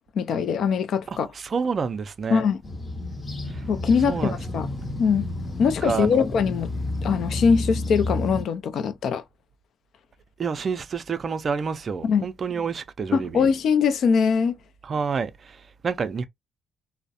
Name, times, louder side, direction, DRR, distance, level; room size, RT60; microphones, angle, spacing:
voice 1, 0.1-1.3 2.3-2.6 3.7-4.7 5.0-5.2 5.6-6.7 7.0-9.2 12.0-12.3 13.1-14.6, left 6 dB, 65° left, 0.4 m, -22 dB
voice 2, 1.3-2.4 3.5-3.6 4.1-4.4 5.6-6.3 10.4-13.5 14.8-16.2, right 5 dB, 45° right, 0.4 m, -28 dB
sound 1, 2.6-8.4, left 2 dB, 30° left, 0.7 m, -31 dB
2.3 x 2.0 x 2.6 m
cardioid pair, 90°, 0 cm